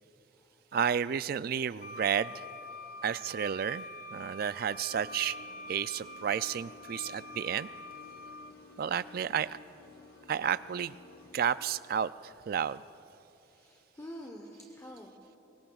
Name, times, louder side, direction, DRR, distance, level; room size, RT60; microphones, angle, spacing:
voice 1, 0.7-2.5 3.0-3.8 4.1-5.4 5.7-7.7 8.8-9.5 10.3-11.0 11.3-12.8, right 8 dB, 50° right, 16 dB, 0.3 m, -31 dB
Wind instrument woodwind instrument, 1.8-8.6, left 1 dB, 40° left, 0.6 m, -45 dB
voice 2, 2.7-3.0 10.3-10.5 13.4-15.4, equal, 15° left, 0 dB, 0.9 m, -49 dB
sound 1, 4.9-11.8, left 3 dB, 75° left, 1.4 m, -54 dB
24.5 x 22.0 x 2.4 m, 2.9 s
head